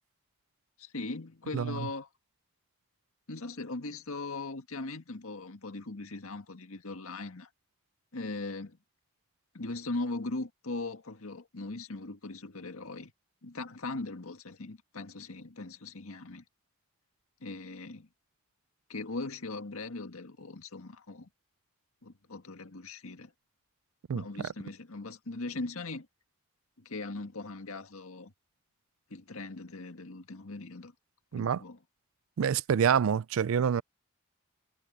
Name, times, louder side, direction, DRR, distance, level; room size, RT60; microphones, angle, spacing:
voice 1, 0.8-2.1 3.3-7.5 8.1-8.8 9.5-13.1 13.4-16.4 17.4-18.1 18.9-21.3 22.0-23.3 24.1-26.1 26.8-28.3 29.1-30.9 31.3-31.8, left 2 dB, 75° left, 1.8 m, -39 dB
voice 2, 31.3-31.6 32.4-33.8, right 7 dB, 70° right, 0.4 m, -27 dB
head